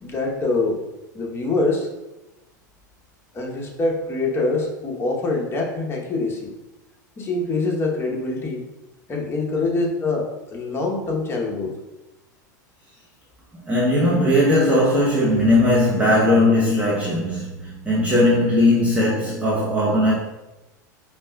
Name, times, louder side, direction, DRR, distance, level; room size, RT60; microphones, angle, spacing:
voice 1, 0.0-0.8 1.1-1.9 3.3-6.4 7.2-8.6 9.1-11.7, left 3 dB, 25° left, 0.9 m, -24 dB
voice 2, 13.7-20.1, left 1 dB, 15° right, 0.8 m, -18 dB
5.1 x 2.3 x 2.2 m
hypercardioid pair, 95°, 10 cm